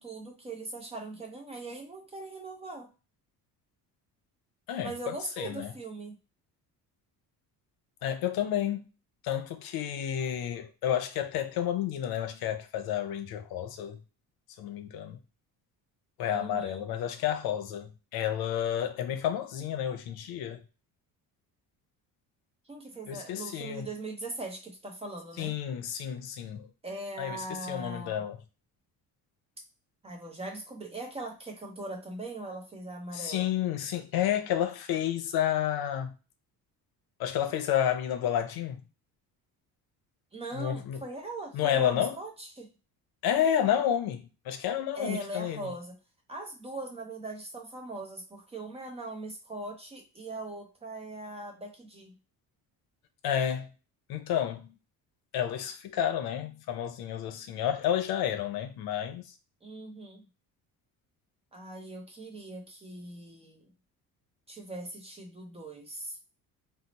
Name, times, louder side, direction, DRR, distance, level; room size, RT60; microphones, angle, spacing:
voice 1, 0.0-2.9 4.8-6.1 16.3-16.9 22.7-25.6 26.8-28.2 30.0-33.5 40.3-42.7 44.9-46.0 46.3-52.1 59.6-60.2 61.5-63.7 64.5-66.2, right 2 dB, 15° right, 0.5 m, -40 dB
voice 2, 4.7-5.7 8.0-8.9 9.2-14.0 14.6-15.2 16.2-20.6 23.1-23.9 25.4-26.7 27.2-28.4 33.1-36.1 37.2-38.8 40.5-41.0 41.5-42.2 43.2-45.7 53.2-53.7 54.1-54.7 55.3-59.3, left 10 dB, 80° left, 0.7 m, -30 dB
2.9 x 2.0 x 3.9 m
cardioid pair, 175°, 36 cm